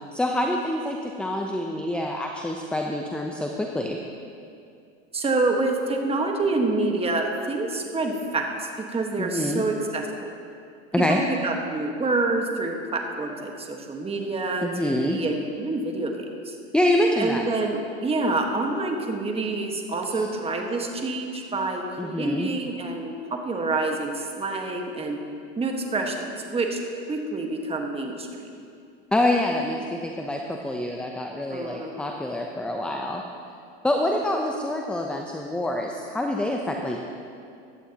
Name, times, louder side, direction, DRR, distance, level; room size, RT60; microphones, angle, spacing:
voice 1, 0.1-4.0 9.2-9.6 10.9-11.2 14.6-15.2 16.7-17.4 20.1-20.2 22.0-22.5 29.1-33.2 33.8-37.0, left 1 dB, 5° left, 1 dB, 0.7 m, -26 dB
voice 2, 5.1-10.3 11.0-16.6 17.2-25.2 25.6-26.8 27.1-28.3 31.5-32.2, right 3 dB, 20° right, 2 dB, 1.5 m, -27 dB
15.5 x 11.0 x 2.9 m, 2.4 s
hypercardioid pair, 105°, 32 cm